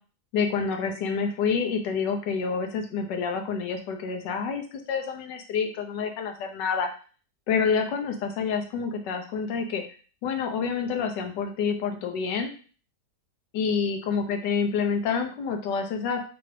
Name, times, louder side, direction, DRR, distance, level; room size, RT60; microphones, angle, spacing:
voice 1, 0.3-6.9 7.5-9.8 10.2-12.5 13.5-16.2, left 5 dB, 85° left, 4 dB, 1.4 m, -28 dB
4.6 x 2.6 x 3.3 m, 0.39 s
omnidirectional pair, 1.9 m